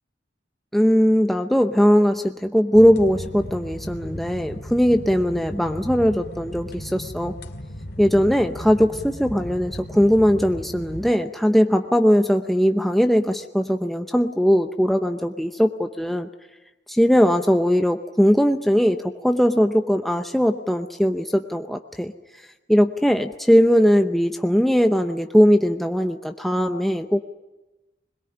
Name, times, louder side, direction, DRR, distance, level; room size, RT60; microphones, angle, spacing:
voice 1, 0.7-7.3 8.0-16.3 16.9-22.1 22.7-27.2, equal, ahead, 5 dB, 0.7 m, -19 dB
sound 1, 2.7-11.1, equal, 65° left, 2.5 m, -36 dB
22.0 x 21.5 x 9.9 m, 1.1 s
head